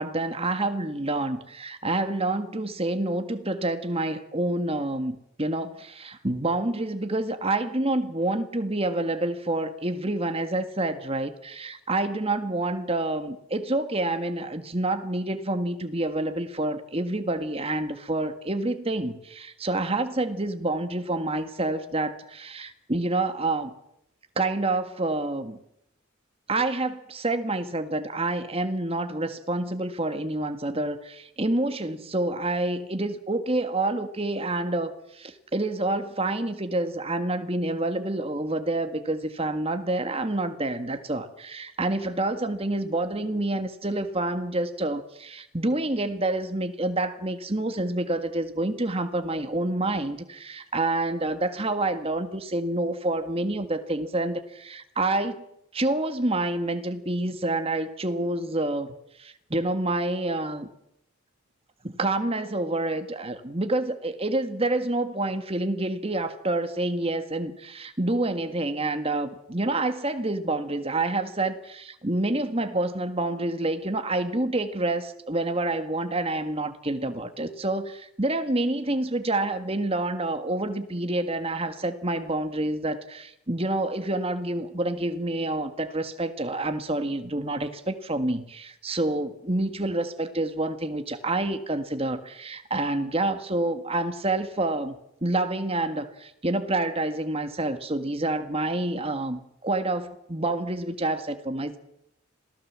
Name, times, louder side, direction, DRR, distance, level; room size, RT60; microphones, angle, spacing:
voice 1, 0.0-23.7 24.4-25.6 26.5-55.4 55.7-60.7 61.8-94.9 95.2-101.8, right 2 dB, 30° right, 1.7 m, -28 dB
27.0 x 18.0 x 7.5 m
head